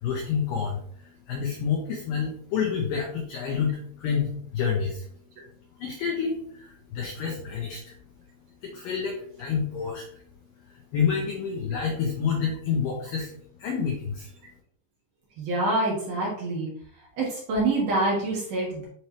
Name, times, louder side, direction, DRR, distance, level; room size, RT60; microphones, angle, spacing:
voice 1, 0.0-5.1 5.8-7.9 8.6-10.0 10.9-13.3 13.6-14.3, left 6 dB, 90° left, 0 dB, 1.9 m, -28 dB
voice 2, 15.4-16.7 17.2-18.9, right 2 dB, 60° right, -4 dB, 2.3 m, -26 dB
9.5 x 3.2 x 3.0 m, 0.64 s
omnidirectional pair, 5.2 m